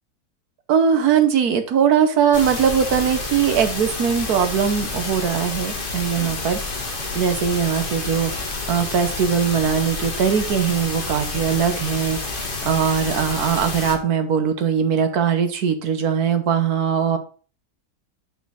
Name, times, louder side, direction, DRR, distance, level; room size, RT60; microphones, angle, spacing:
voice 1, 0.7-6.6 7.1-8.3 8.7-17.2, right 7 dB, 65° right, 9 dB, 1.3 m, -20 dB
sound 1, 2.3-14.0, left 3 dB, 35° left, 1.2 m, -29 dB
5.9 x 4.3 x 5.5 m, 0.39 s
omnidirectional pair, 1.9 m